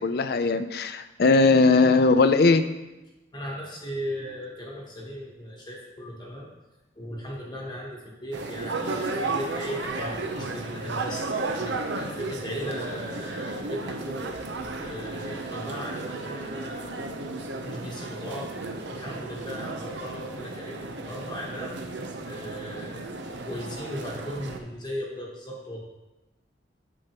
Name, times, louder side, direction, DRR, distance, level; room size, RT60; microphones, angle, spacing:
voice 1, 0.0-2.6, left 3 dB, 60° left, 10 dB, 0.4 m, -19 dB
voice 2, 3.3-6.5 7.0-17.0 17.6-18.5 18.9-21.8 22.2-23.1 23.5-25.8, equal, 25° left, -2 dB, 1.0 m, -37 dB
sound 1, 8.3-24.6, right 3 dB, 85° right, 0.7 m, -34 dB
8.7 x 6.4 x 3.0 m, 1.0 s
head